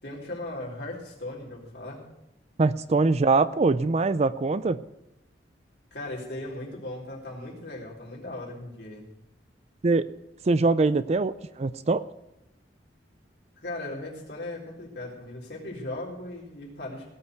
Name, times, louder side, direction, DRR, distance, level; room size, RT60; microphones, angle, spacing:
voice 1, 0.0-2.0 5.9-9.1 13.6-17.1, left 1 dB, 65° left, -3 dB, 3.9 m, -37 dB
voice 2, 2.6-4.8 9.8-10.1 10.5-12.0, right 3 dB, 35° right, 15 dB, 0.4 m, -23 dB
17.0 x 5.7 x 7.9 m, 0.87 s
head